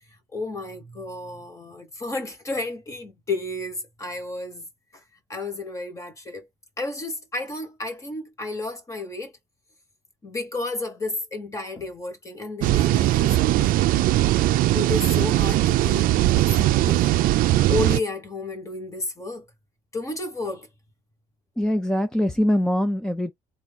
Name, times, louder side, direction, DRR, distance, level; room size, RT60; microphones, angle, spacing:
voice 1, 0.3-4.6 4.9-5.0 5.3-6.5 6.8-9.3 10.2-14.1 14.7-17.2 17.7-19.5 19.9-20.7, left 2 dB, 20° left, 1.2 m, -32 dB
sound 1, 12.6-18.0, right 15 dB, 70° right, 0.4 m, -20 dB
voice 2, 21.6-23.3, equal, 5° left, 0.4 m, -23 dB
4.5 x 2.3 x 3.9 m
cardioid pair, 165°, 15 cm